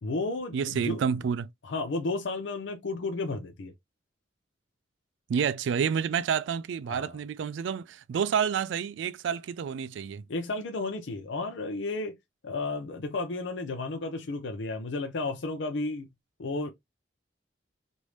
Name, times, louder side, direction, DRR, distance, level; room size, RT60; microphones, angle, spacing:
voice 1, 0.0-1.0 1.6-3.7 6.9-7.2 10.3-12.2 12.4-16.1 16.4-16.7, left 3 dB, 85° left, 0.5 m, -33 dB
voice 2, 0.5-1.5 5.3-10.3, right 7 dB, 85° right, 0.3 m, -29 dB
3.1 x 2.6 x 3.1 m
head